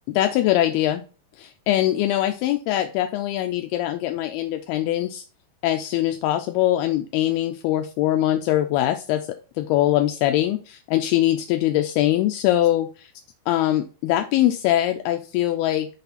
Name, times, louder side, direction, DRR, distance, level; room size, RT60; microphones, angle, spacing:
voice 1, 0.1-1.0 1.4-5.2 5.6-9.3 9.6-13.1 13.5-15.9, left 13 dB, 85° left, 6 dB, 2.4 m, -22 dB
6.8 x 4.1 x 4.0 m, 0.35 s
omnidirectional pair, 4.6 m